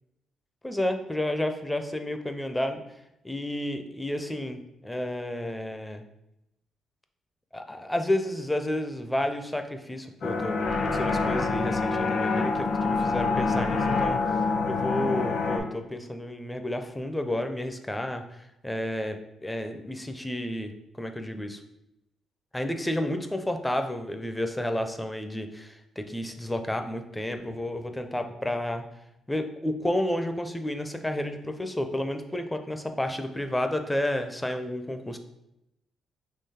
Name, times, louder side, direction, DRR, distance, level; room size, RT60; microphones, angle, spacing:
voice 1, 0.6-2.8 3.3-6.0 7.5-20.7 21.0-21.6 22.5-28.8 29.3-35.2, left 1 dB, 10° left, 6 dB, 0.5 m, -31 dB
sound 1, 10.2-15.6, left 4 dB, 65° left, 0.9 m, -26 dB
3.7 x 3.0 x 4.2 m, 0.87 s
cardioid pair, 90°, 0 cm